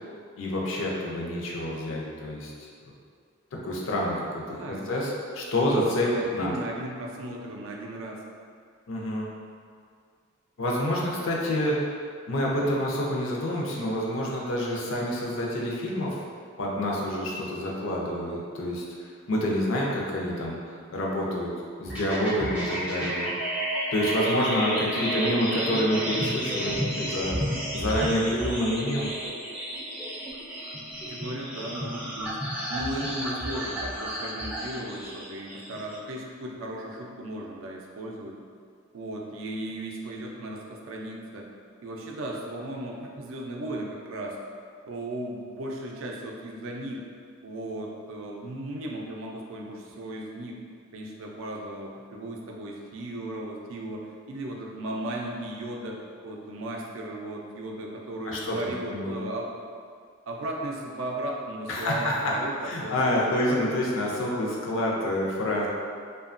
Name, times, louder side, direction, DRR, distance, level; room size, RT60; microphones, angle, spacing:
voice 1, 0.4-2.5 3.5-6.5 8.9-9.3 10.6-11.9 12.3-16.2 16.6-18.8 19.3-20.6 20.9-21.5 21.8-23.3 23.9-27.4 27.7-29.1 58.2-58.6 58.9-59.2 61.7-62.2 62.6-65.7, left 1 dB, 70° left, -3 dB, 0.5 m, -27 dB
voice 2, 4.5-4.9 5.6-8.2 24.8-25.3 31.1-32.4 32.7-38.4 38.9-41.5 41.8-44.4 44.9-47.1 47.4-50.6 50.9-59.5 60.3-63.0 63.5-63.6, right 1 dB, 75° right, 0 dB, 0.4 m, -36 dB
sound 1, 21.9-36.0, equal, 5° right, 0.3 m, -32 dB
2.8 x 2.2 x 2.4 m, 2.1 s
head